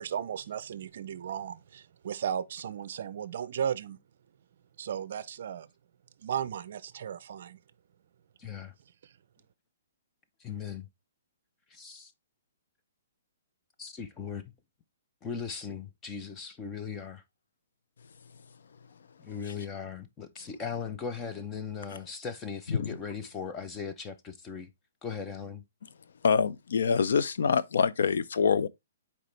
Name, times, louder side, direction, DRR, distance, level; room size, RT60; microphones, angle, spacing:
voice 1, 0.0-4.0 4.8-5.7 6.2-7.6 9.0-9.1, right 8 dB, 50° right, 0.5 m, -35 dB
voice 2, 8.4-8.7 10.4-10.9 11.7-12.1 13.8-14.5 15.2-17.2 19.2-24.7 25.0-25.6, left 6 dB, 10° left, 0.6 m, -38 dB
voice 3, 26.2-28.7, left 6 dB, 70° left, 0.5 m, -25 dB
6.7 x 4.5 x 3.2 m
hypercardioid pair, 170°, 0 cm